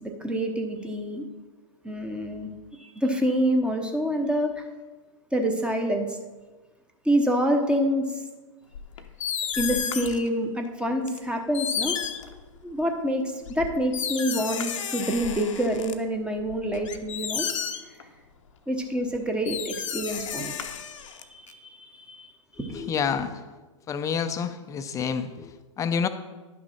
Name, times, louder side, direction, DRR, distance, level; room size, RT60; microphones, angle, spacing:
voice 1, 0.0-1.2 1.8-2.5 3.0-4.6 5.3-6.2 7.0-8.2 9.6-12.0 12.6-17.5 18.7-20.6 21.3-22.3 22.6-22.9, equal, 5° right, 4 dB, 1.0 m, -27 dB
sound 1, 8.8-10.3 11.1-11.2 11.5-12.8 13.5-15.9 16.4-18.0 19.1-19.2 19.5-21.5, left 8 dB, 70° left, 0.9 m, -32 dB
voice 2, 22.7-23.4 23.9-26.1, left 6 dB, 20° left, 10 dB, 0.6 m, -28 dB
11.0 x 6.0 x 4.3 m, 1.2 s
hypercardioid pair, 115°, 17 cm